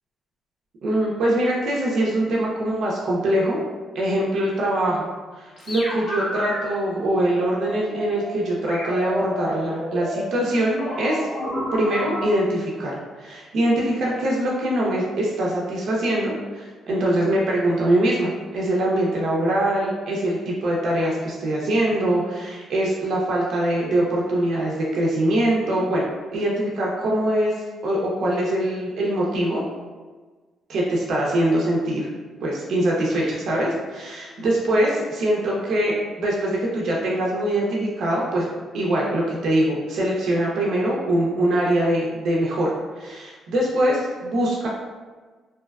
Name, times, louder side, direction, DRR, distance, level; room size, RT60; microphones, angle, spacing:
voice 1, 0.8-3.6 3.9-5.1 5.4-11.3 11.7-26.1 26.3-27.5 27.8-29.6 30.7-32.1 32.4-38.5 38.7-44.7, right 1 dB, 70° right, -4 dB, 0.5 m, -23 dB
sound 1, 5.6-6.6 7.1-8.3 8.7-12.3, equal, 60° left, 0.7 m, -30 dB
2.6 x 2.2 x 2.3 m, 1.4 s
cardioid pair, 90°, 0 cm